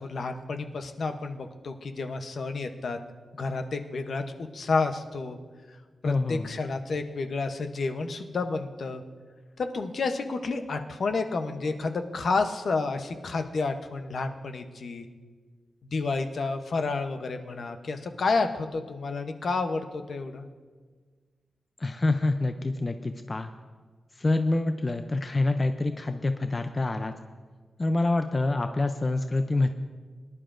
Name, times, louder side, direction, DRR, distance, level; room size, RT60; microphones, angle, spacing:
voice 1, 0.0-3.0 3.3-5.4 6.0-9.0 9.6-15.1 15.9-20.5, left 3 dB, 55° left, 7 dB, 0.7 m, -30 dB
voice 2, 6.0-6.5 21.8-23.5 24.2-27.1 27.8-29.7, left 2 dB, 25° left, 7 dB, 0.4 m, -26 dB
23.0 x 11.0 x 2.5 m, 1.5 s
wide cardioid pair, 175°, 0 cm